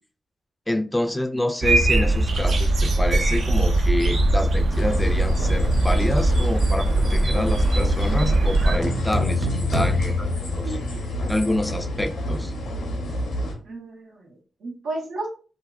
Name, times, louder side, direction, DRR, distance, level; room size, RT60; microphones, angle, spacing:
voice 1, 0.7-10.8 11.3-12.5, left 1 dB, 10° left, 0.3 m, -27 dB
sound 1, 1.6-8.8, right 2 dB, 65° right, 0.4 m, -20 dB
sound 2, 4.7-13.5, equal, 90° left, 0.7 m, -29 dB
sound 3, 8.8-11.4, left 2 dB, 30° right, 0.8 m, -25 dB
voice 2, 13.6-15.3, right 2 dB, 90° right, 0.9 m, -33 dB
2.7 x 2.4 x 2.3 m
cardioid pair, 60°, 0 cm